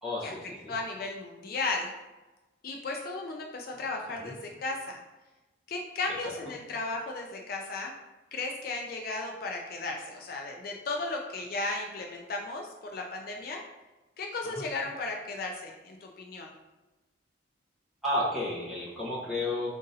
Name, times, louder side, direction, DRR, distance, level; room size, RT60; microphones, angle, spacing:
voice 1, 0.0-0.7 4.2-4.3 14.4-14.7 18.0-19.7, left 1 dB, ahead, -8 dB, 1.0 m, -32 dB
voice 2, 0.7-2.0 2.6-5.0 5.7-7.9 8.3-13.6 14.2-16.5, left 3 dB, 50° left, 1 dB, 0.4 m, -35 dB
3.8 x 2.6 x 3.9 m, 1.1 s
head